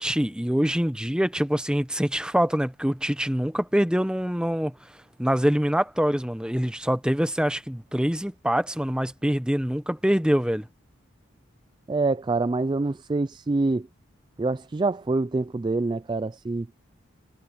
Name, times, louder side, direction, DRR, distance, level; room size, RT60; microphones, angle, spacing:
voice 1, 0.0-4.7 5.2-10.7, equal, 5° right, 0.9 m, -24 dB
voice 2, 11.9-13.9 14.4-16.7, right 3 dB, 20° right, 0.3 m, -26 dB
head